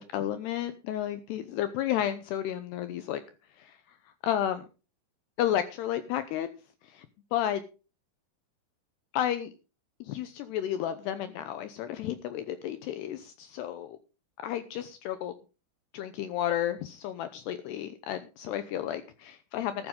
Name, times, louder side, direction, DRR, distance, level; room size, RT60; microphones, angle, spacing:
voice 1, 0.0-3.2 3.6-4.0 4.2-4.7 5.4-6.5 6.8-7.1 7.3-7.6 9.1-9.5 10.0-14.0 14.4-15.3 15.9-19.9, left 11 dB, 90° left, 11 dB, 2.3 m, -32 dB
14.0 x 12.0 x 3.7 m, 0.33 s
omnidirectional pair, 5.9 m